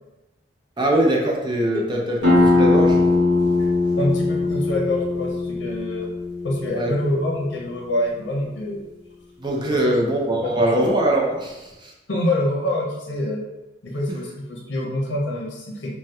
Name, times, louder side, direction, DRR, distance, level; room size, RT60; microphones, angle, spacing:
voice 1, 0.8-3.0 6.7-6.9 9.4-11.9, right 1 dB, 25° right, -1 dB, 0.4 m, -22 dB
sound 1, 2.2-7.6, left 2 dB, 90° right, 1.1 m, -20 dB
voice 2, 4.0-6.1 6.4-8.8 10.0-10.1 10.4-10.8 12.1-13.4 13.8-15.9, left 1 dB, 75° left, -2 dB, 0.7 m, -26 dB
2.8 x 2.1 x 3.4 m, 1.0 s
head